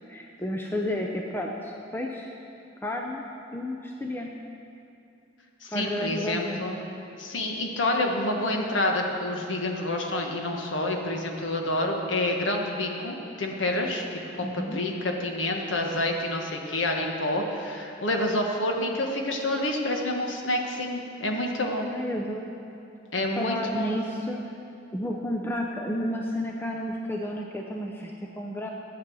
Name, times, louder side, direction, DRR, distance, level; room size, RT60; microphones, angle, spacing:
voice 1, 0.1-2.4 2.8-3.2 3.5-4.3 5.7-6.7 14.4-14.8 21.9-22.5 23.4-24.4 24.9-28.7, left 1 dB, 10° left, 0 dB, 0.6 m, -31 dB
voice 2, 5.6-6.8 7.2-21.9 23.1-24.0, left 1 dB, 80° left, 2 dB, 1.4 m, -28 dB
12.5 x 8.4 x 6.2 m, 2.7 s
head